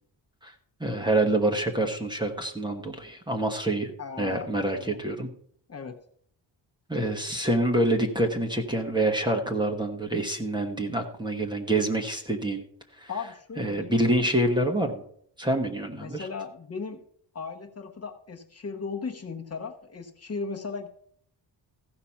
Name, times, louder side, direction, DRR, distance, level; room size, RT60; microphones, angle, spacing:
voice 1, 0.8-3.9 4.2-5.3 6.9-12.6 13.0-13.1 13.6-15.0 15.4-16.3, right 1 dB, 10° right, 3 dB, 1.2 m, -26 dB
voice 2, 4.0-5.0 5.7-6.0 13.1-13.9 15.9-17.0 17.3-20.9, left 5 dB, 35° left, 3 dB, 1.0 m, -37 dB
15.0 x 5.8 x 5.7 m, 0.62 s
wide cardioid pair, 175°, 43 cm